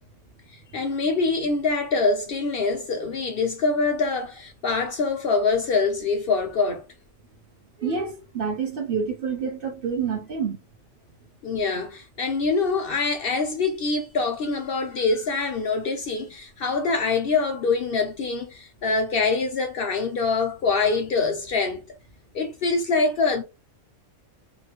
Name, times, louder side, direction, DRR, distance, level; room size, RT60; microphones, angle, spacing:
voice 1, 0.5-6.8 11.4-22.0 22.3-23.4, left 4 dB, 65° left, 0.6 m, -24 dB
voice 2, 7.8-10.6, right 6 dB, 50° right, 0.9 m, -28 dB
3.0 x 2.7 x 2.9 m
omnidirectional pair, 1.3 m